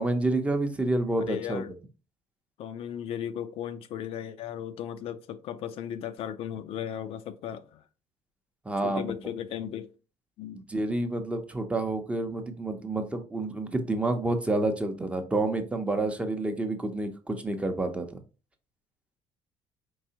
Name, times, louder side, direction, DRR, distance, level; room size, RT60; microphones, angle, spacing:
voice 1, 0.0-1.6 8.6-9.1 10.5-18.1, right 2 dB, 10° right, 0.6 m, -29 dB
voice 2, 1.2-1.7 2.6-7.8 8.8-9.9 10.4-10.6, left 9 dB, 60° left, 0.4 m, -36 dB
4.7 x 3.3 x 2.8 m
cardioid pair, 140°, 11 cm